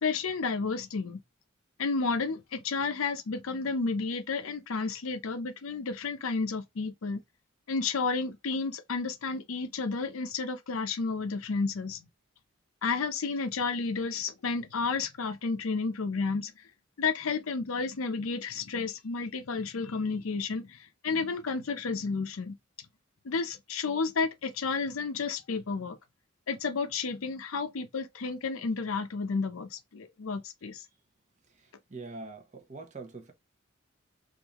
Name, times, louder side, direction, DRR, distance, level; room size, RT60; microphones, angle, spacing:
voice 1, 0.0-1.2 1.8-7.2 7.7-12.1 12.8-16.5 17.0-22.5 23.2-26.0 26.5-30.8, left 4 dB, 80° left, 0.6 m, -31 dB
voice 2, 31.9-33.3, right 3 dB, 35° right, 0.8 m, -43 dB
3.6 x 2.6 x 2.9 m
head